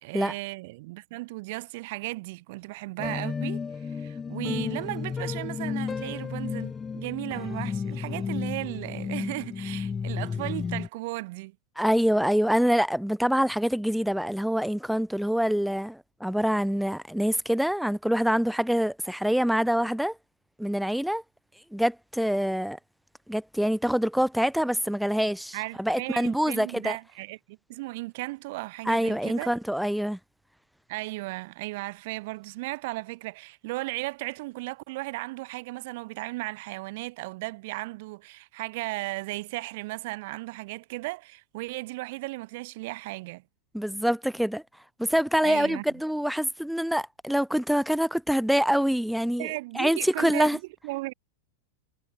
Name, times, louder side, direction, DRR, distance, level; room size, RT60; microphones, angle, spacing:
voice 1, 0.0-11.6 25.5-29.6 30.9-43.4 45.4-45.8 49.4-51.1, right 22 dB, 50° right, 2.2 m, -36 dB
sound 1, 3.0-10.9, left 6 dB, 15° left, 1.5 m, -32 dB
voice 2, 11.8-20.2 20.6-21.2 21.7-22.8 23.3-27.0 28.9-30.2 43.7-44.6 45.0-49.5 49.7-50.6, equal, ahead, 0.6 m, -25 dB
figure-of-eight pair, 90°, 0 cm